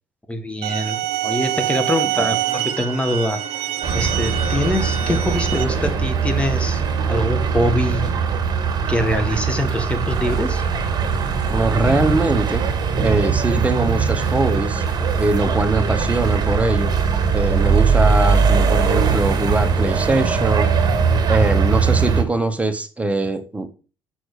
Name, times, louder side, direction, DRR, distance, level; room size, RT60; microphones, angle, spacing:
voice 1, 0.3-3.4 3.9-6.8 7.1-8.2 8.9-10.6, left 1 dB, 10° left, 7 dB, 1.6 m, -23 dB
sound 1, 0.6-5.6, right 12 dB, 75° right, 1.3 m, -25 dB
sound 2, 3.8-22.2, right 5 dB, 45° right, 2.2 m, -20 dB
voice 2, 11.5-12.6 13.0-14.8 15.2-16.9 17.3-20.7 21.3-23.7, right 2 dB, 15° right, 8 dB, 1.4 m, -21 dB
6.4 x 6.1 x 4.9 m, 0.34 s
supercardioid pair, 75°, 10 cm